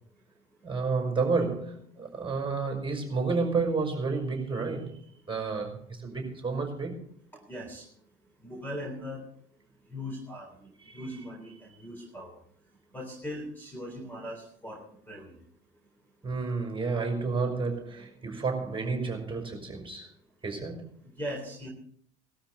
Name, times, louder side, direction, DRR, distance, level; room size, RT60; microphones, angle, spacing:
voice 1, 0.6-7.0 10.8-11.0 16.2-20.1 20.4-20.9, right 4 dB, 15° right, 3 dB, 5.5 m, -31 dB
voice 2, 7.5-7.9 8.4-9.2 9.9-12.4 12.9-15.4 21.0-21.7, equal, 5° left, 1 dB, 3.8 m, -40 dB
19.5 x 13.0 x 4.0 m, 0.62 s
figure-of-eight pair, 70°, 36 cm